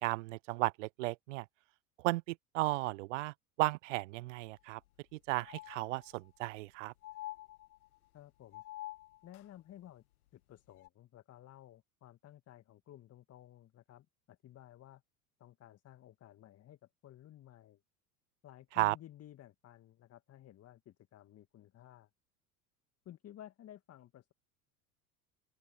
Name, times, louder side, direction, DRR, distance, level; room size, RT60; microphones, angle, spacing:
voice 1, 0.0-1.5 2.0-4.8 5.1-6.9 18.8-19.0, right 21 dB, 55° right, 0.5 m, -34 dB
sound 1, 4.4-4.5 4.9-5.0 5.4-6.4 7.0-8.1 8.5-9.5 10.7-10.9, left 16 dB, 70° left, 0.6 m, -48 dB
voice 2, 8.1-8.6 9.2-10.0 10.3-15.0 15.4-17.8 18.4-22.1 23.1-24.3, left 12 dB, 35° left, 1.7 m, -55 dB
open air
figure-of-eight pair, 75°, 46 cm